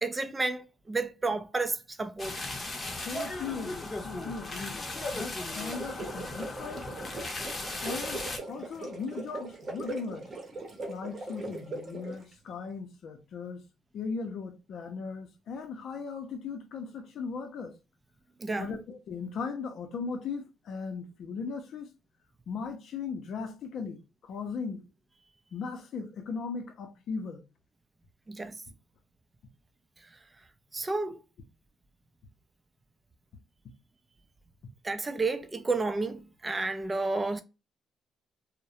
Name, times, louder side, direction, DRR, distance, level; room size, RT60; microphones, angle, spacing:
voice 1, 0.0-2.4 18.4-18.7 28.3-28.6 30.7-31.2 34.8-37.4, right 3 dB, 25° right, 0.4 m, -31 dB
sound 1, 2.2-8.4, left 2 dB, 30° left, 0.7 m, -37 dB
voice 2, 3.0-6.9 7.8-10.3 10.9-13.7 13.9-17.8 18.6-21.9 22.5-24.9 25.5-27.4, left 5 dB, 70° left, 0.5 m, -38 dB
sound 2, 5.5-12.3, right 2 dB, 45° right, 0.8 m, -40 dB
2.3 x 2.1 x 2.7 m
cardioid pair, 90°, 0 cm